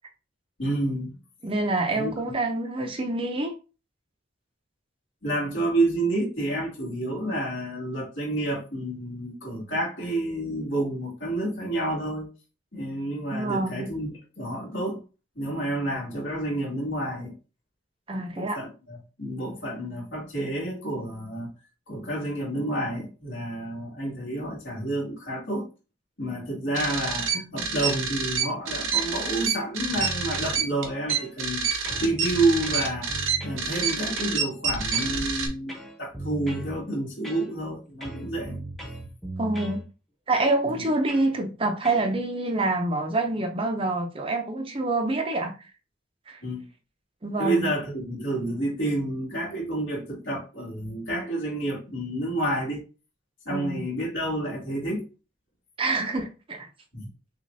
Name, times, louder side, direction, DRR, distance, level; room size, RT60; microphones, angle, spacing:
voice 1, 0.6-1.1 1.9-2.1 5.2-12.3 12.7-14.1 14.4-15.0 15.4-17.3 18.1-21.5 21.9-25.7 26.2-31.7 32.0-38.6 40.6-40.9 46.4-46.7 47.4-52.8 53.5-55.1 56.9-57.1, right 1 dB, 65° left, 2.1 m, -29 dB
voice 2, 1.4-3.5 13.3-13.9 18.1-18.6 27.3-27.6 39.4-39.8 40.3-45.6 46.3-46.4 47.2-47.7 53.5-53.8 55.8-56.7, right 2 dB, 25° right, 0.6 m, -27 dB
sound 1, 26.7-35.5, right 6 dB, 85° right, 0.9 m, -28 dB
sound 2, 30.0-30.6 31.1-31.6 31.8-33.6 34.2-34.4 34.9-35.2 35.7-36.7 37.2-37.7 38.0-39.8 40.3-40.6 41.1-41.3 41.8-42.1, right 1 dB, ahead, 0.9 m, -38 dB
6.1 x 2.4 x 2.7 m
head